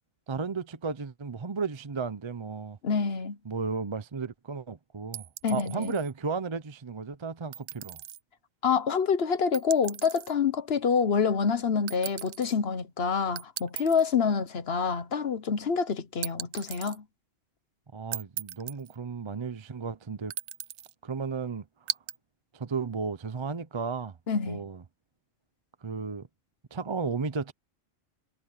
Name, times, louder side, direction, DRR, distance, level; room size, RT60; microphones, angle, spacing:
voice 1, 0.3-2.8 3.4-8.0 17.9-20.3 21.0-22.0 22.5-24.2 24.5-24.8 25.8-26.3 26.7-27.5, right 5 dB, 30° right, 0.6 m, -34 dB
voice 2, 2.8-3.4 5.4-6.0 8.6-17.0 24.3-24.6, left 6 dB, 50° left, 1.1 m, -27 dB
sound 1, 5.1-6.1 7.5-8.2 9.5-10.3 11.9-12.5 13.4-14.1 16.2-17.0 18.1-19.0 20.3-20.9 21.9-22.2, right 12 dB, 75° right, 1.0 m, -38 dB
omnidirectional pair, 1.4 m